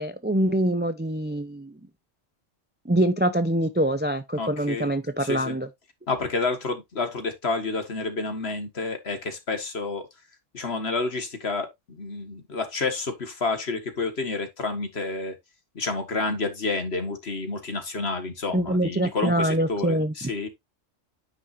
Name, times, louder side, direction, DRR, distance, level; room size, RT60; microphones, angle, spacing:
voice 1, 0.0-1.8 2.9-5.7 18.5-20.1, right 1 dB, 15° right, 0.4 m, -24 dB
voice 2, 4.4-4.9 5.2-5.6 6.1-10.1 10.5-15.4 15.8-20.5, left 3 dB, 60° left, 1.9 m, -29 dB
9.6 x 6.3 x 2.6 m
omnidirectional pair, 1.2 m